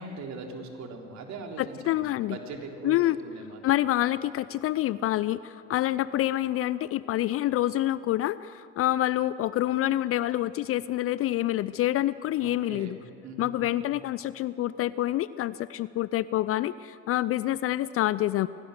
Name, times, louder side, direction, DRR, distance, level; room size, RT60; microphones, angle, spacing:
voice 1, 0.0-3.0 3.3-3.6 12.4-12.9 13.2-13.7, right 3 dB, 45° right, 2 dB, 3.6 m, -40 dB
voice 2, 1.6-2.4 2.8-3.2 3.6-13.0 13.4-18.5, left 14 dB, 40° left, 17 dB, 0.5 m, -27 dB
25.0 x 18.0 x 6.7 m, 3.0 s
figure-of-eight pair, 65°, 38 cm